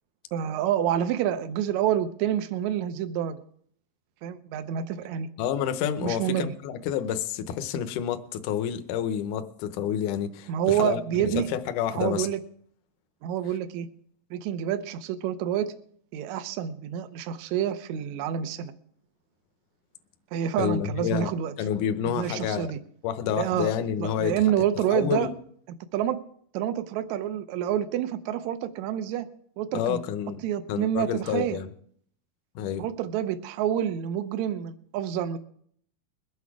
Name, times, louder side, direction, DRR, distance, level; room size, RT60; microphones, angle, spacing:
voice 1, 0.3-3.4 4.2-5.3 6.0-6.5 10.5-11.5 11.9-12.4 13.2-13.9 14.3-15.7 16.1-18.7 20.3-21.6 22.1-22.8 23.4-23.7 24.0-25.3 25.9-26.2 26.5-29.3 29.6-30.0 30.4-31.6 32.8-35.4, right 10 dB, 75° right, 10 dB, 1.9 m, -28 dB
voice 2, 5.4-12.3 20.6-21.3 21.6-22.7 23.0-24.3 24.9-25.3 29.7-30.4 30.7-31.7 32.6-32.8, left 9 dB, 75° left, 9 dB, 2.2 m, -29 dB
22.0 x 8.2 x 4.8 m, 0.62 s
omnidirectional pair, 4.0 m